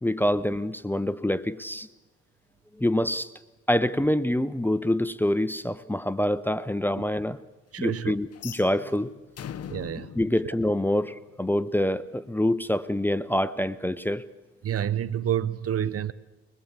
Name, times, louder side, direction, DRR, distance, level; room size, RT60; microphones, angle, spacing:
voice 1, 0.0-1.9 2.8-3.3 3.7-7.4 7.8-9.1 10.2-14.2, left 1 dB, 5° left, 0.7 m, -26 dB
voice 2, 7.7-8.2 9.7-10.1 10.4-10.5 14.6-16.1, right 10 dB, 50° right, 0.8 m, -28 dB
sound 1, 8.3-11.4, left 8 dB, 55° left, 1.1 m, -42 dB
22.5 x 21.0 x 7.3 m
cardioid pair, 90°, 30 cm